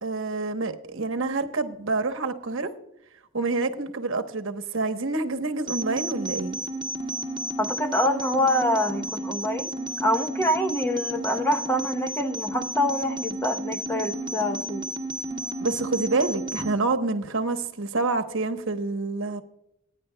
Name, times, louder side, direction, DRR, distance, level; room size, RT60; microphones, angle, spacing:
voice 1, 0.0-2.7 3.3-6.6 15.6-19.4, right 3 dB, 70° right, 1.0 m, -27 dB
sound 1, 5.7-16.7, right 1 dB, 25° right, 1.6 m, -32 dB
voice 2, 7.6-9.7 10.0-14.9, equal, 10° left, 0.8 m, -26 dB
25.0 x 9.7 x 2.2 m
head